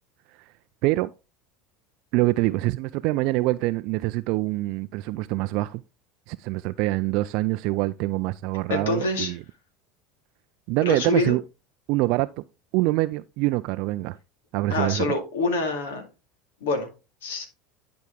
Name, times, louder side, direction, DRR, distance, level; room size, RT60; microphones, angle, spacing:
voice 1, 2.1-5.8 6.3-9.4 10.7-11.4 11.9-12.4 12.7-14.2 14.5-15.1, right 19 dB, 60° right, 0.3 m, -25 dB
voice 2, 8.7-9.3 10.8-11.4 14.7-16.1 16.6-16.9 17.2-17.5, left 3 dB, 75° left, 2.2 m, -26 dB
10.5 x 4.7 x 3.6 m
hypercardioid pair, 80°, 0 cm